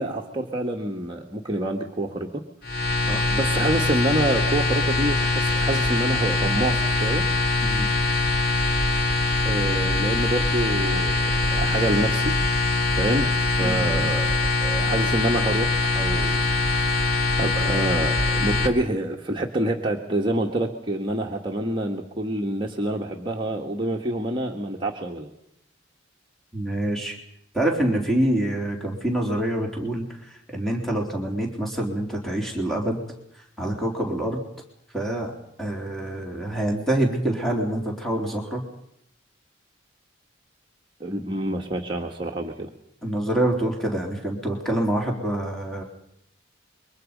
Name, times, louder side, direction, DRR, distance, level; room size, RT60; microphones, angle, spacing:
voice 1, 0.0-2.4 3.3-7.2 9.4-12.3 13.0-16.4 16.7-25.3 41.0-42.7, right 1 dB, 25° right, -1 dB, 1.8 m, -27 dB
sound 1, 2.6-18.7, left 3 dB, 50° left, 3.0 m, -23 dB
voice 2, 13.6-14.2 26.5-27.2 27.5-33.0 33.3-34.4 34.9-35.3 35.6-38.6 43.0-45.8, right 1 dB, ahead, -1 dB, 4.0 m, -26 dB
27.5 x 24.0 x 5.4 m, 0.72 s
head